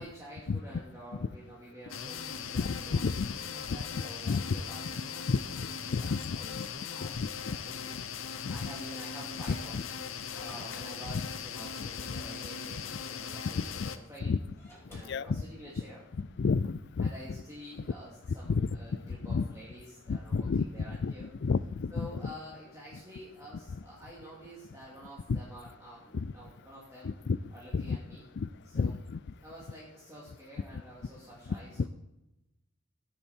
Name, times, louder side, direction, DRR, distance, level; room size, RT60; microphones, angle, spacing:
voice 1, 0.0-9.8 10.3-14.4 14.9-16.0 17.0-21.3 21.9-27.1 27.5-28.3 28.6-28.9 29.4-31.9, equal, 15° right, 2.8 m, -49 dB
sound 1, 1.9-14.0, left 7 dB, 80° left, 0.9 m, -39 dB
voice 2, 2.5-3.3 4.3-4.6 5.3-6.7 7.1-7.3 8.4-8.6 9.7-9.8 11.8-11.9 13.6-13.9 14.3-14.4 14.9-15.4 16.4-17.1 18.5-18.7 19.3-19.4 20.1-20.7 21.0-22.1 25.3-25.4 26.1-26.3 27.0-27.4 27.7-28.0 28.4-28.5 28.7-29.2, left 4 dB, 60° left, 0.4 m, -31 dB
Slam / Squeak, 9.5-11.2 11.5-12.5 12.8-13.7 14.4-15.9, equal, 10° left, 4.9 m, -58 dB
17.5 x 8.7 x 4.5 m
head